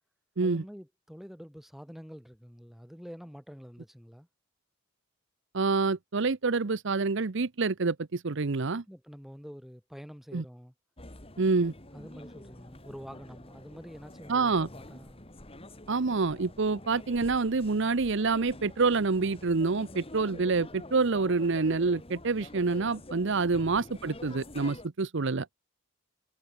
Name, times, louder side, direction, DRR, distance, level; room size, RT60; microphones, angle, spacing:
voice 1, 0.4-4.3 8.9-10.7 11.9-15.2, equal, ahead, 4.6 m, -47 dB
voice 2, 5.5-8.8 10.3-10.4 11.4-11.7 14.3-14.7 15.9-25.5, right 4 dB, 60° right, 0.8 m, -27 dB
sound 1, 11.0-24.9, left 1 dB, 30° left, 4.0 m, -47 dB
head